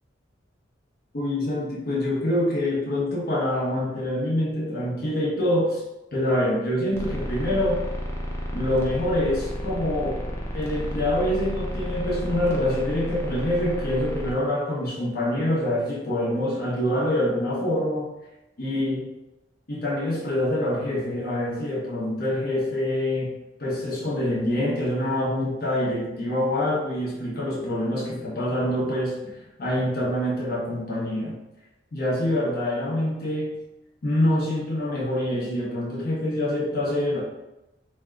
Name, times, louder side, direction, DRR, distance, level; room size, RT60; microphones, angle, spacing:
voice 1, 1.1-5.8 6.1-7.8 8.5-10.2 10.5-18.1 18.6-19.1 19.7-23.3 23.6-31.3 31.9-33.5 34.0-37.2, left 1 dB, 55° left, -5 dB, 0.8 m, -25 dB
sound 1, 6.9-14.3, equal, 15° left, 0.4 m, -32 dB
2.7 x 2.2 x 3.4 m, 0.94 s
head